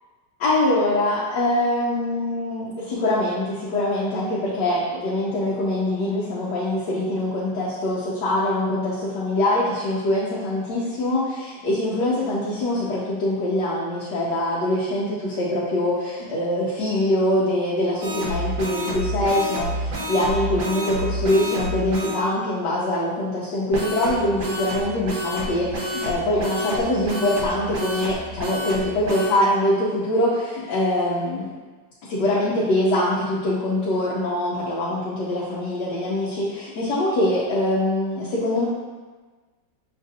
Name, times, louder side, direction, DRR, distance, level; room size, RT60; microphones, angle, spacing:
voice 1, 0.4-31.5 32.1-38.7, left 1 dB, 75° left, -8 dB, 1.3 m, -23 dB
sound 1, 18.0-22.2 23.7-29.3, equal, 60° right, 1.1 m, -29 dB
6.1 x 2.5 x 2.7 m, 1.3 s
omnidirectional pair, 1.9 m